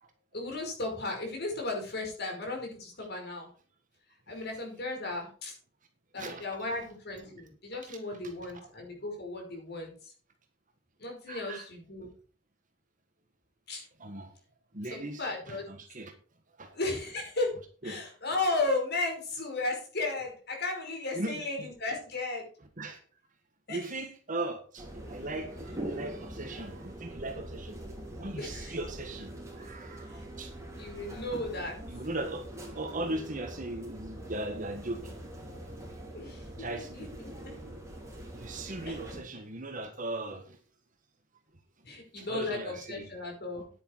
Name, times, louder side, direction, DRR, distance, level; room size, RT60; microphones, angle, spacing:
voice 1, 0.3-3.5 4.3-5.5 6.1-9.9 11.0-12.1 13.7-13.9 14.9-15.6 16.7-17.6 17.8-22.5 23.7-23.9 28.4-28.8 30.8-31.8 36.1-36.7 36.9-37.5 38.9-39.0 41.8-43.7, left 2 dB, 55° left, 2 dB, 5.2 m, -35 dB
voice 2, 6.1-6.4 7.9-8.0 11.3-11.7 12.0-12.1 14.0-14.3 14.7-16.1 16.6-16.8 17.8-18.0 21.1-21.7 22.8-23.0 23.7-27.8 28.2-30.6 31.9-32.5 32.7-35.2 36.6-37.1 38.3-40.6 42.2-43.1, right 2 dB, 40° right, 5 dB, 1.6 m, -38 dB
sound 1, 24.8-39.2, right 1 dB, 15° right, 4.1 m, -43 dB
9.9 x 9.8 x 4.7 m, 0.40 s
head